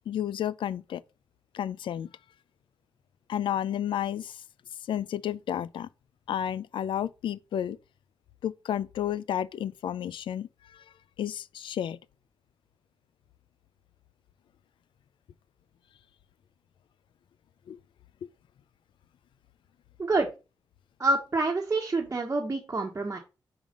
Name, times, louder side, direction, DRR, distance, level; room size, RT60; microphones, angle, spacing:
voice 1, 0.1-1.0 1.5-2.1 3.3-4.4 4.9-5.9 6.3-7.8 8.4-10.8 11.2-12.0 17.7-17.8, left 10 dB, 90° left, 0.4 m, -31 dB
voice 2, 20.0-20.3 21.0-23.2, right 2 dB, 35° right, 1.2 m, -27 dB
5.1 x 4.9 x 5.2 m
cardioid pair, 80°, 8 cm